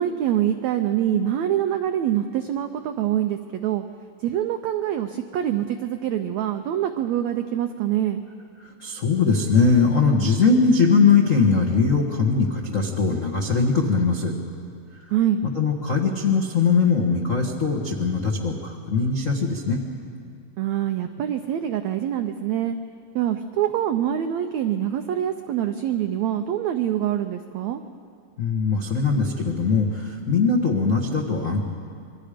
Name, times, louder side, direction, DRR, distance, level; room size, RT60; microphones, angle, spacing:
voice 1, 0.0-3.8 4.2-8.2 15.1-15.4 20.6-22.8 23.1-27.8, right 10 dB, 90° right, 7 dB, 1.5 m, -25 dB
voice 2, 8.8-14.3 15.5-19.8 28.4-31.6, left 4 dB, 75° left, -2 dB, 0.7 m, -21 dB
27.5 x 23.0 x 5.1 m, 2.3 s
omnidirectional pair, 4.1 m